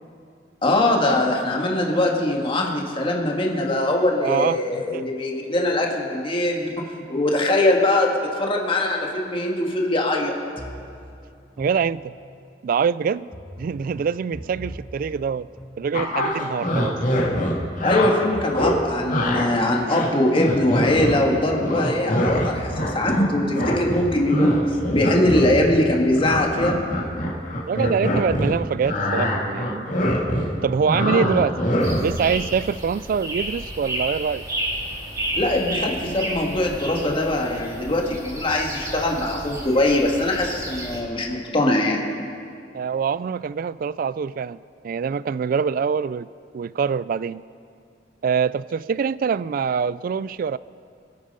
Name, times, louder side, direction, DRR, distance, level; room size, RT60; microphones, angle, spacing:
voice 1, 0.6-10.4 17.8-26.8 35.3-42.0, left 1 dB, 30° left, 0 dB, 1.8 m, -22 dB
voice 2, 4.2-5.1 11.6-12.1 12.6-13.3 13.6-15.5 15.8-17.0 27.7-29.9 30.6-31.6 32.0-34.5 42.7-46.3 46.5-47.4 48.2-50.6, right 6 dB, 50° right, 19 dB, 0.3 m, -24 dB
sound 1, 10.6-12.4 13.3-16.4 17.3-20.4 21.3-24.4 25.3-26.7, equal, 5° left, 1.3 m, -41 dB
sound 2, 15.9-18.1 18.5-18.8 19.1-19.4 19.8-21.3 21.6-23.3 23.5-28.5 28.8-32.2, left 1 dB, 45° left, 2.3 m, -23 dB
sound 3, 31.8-41.0, right 1 dB, 20° right, 2.0 m, -32 dB
24.0 x 8.9 x 5.5 m, 2.4 s
head